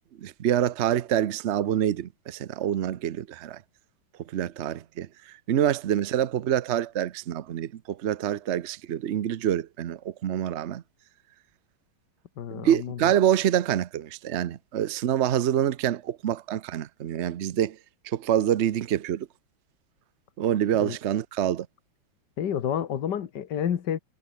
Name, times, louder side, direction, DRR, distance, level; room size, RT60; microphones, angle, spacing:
voice 1, 0.2-3.6 4.3-10.8 12.5-17.8 18.0-19.3 20.4-21.7, right 10 dB, 75° right, 0.6 m, -26 dB
voice 2, 12.4-13.1 20.8-21.0 22.4-24.0, left 9 dB, 60° left, 1.9 m, -29 dB
omnidirectional pair, 2.2 m